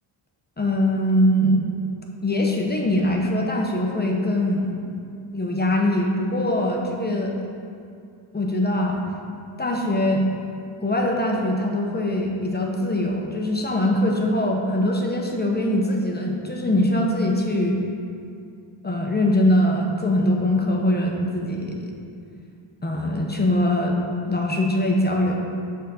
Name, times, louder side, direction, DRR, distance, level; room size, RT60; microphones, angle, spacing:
voice 1, 0.6-1.6 2.2-4.9 5.3-7.3 8.3-9.0 9.6-10.2 10.8-17.8 18.8-21.9 22.8-24.0 24.3-25.4, left 1 dB, 20° left, 0 dB, 0.9 m, -22 dB
7.0 x 4.0 x 6.3 m, 2.4 s
wide cardioid pair, 105°, 50 cm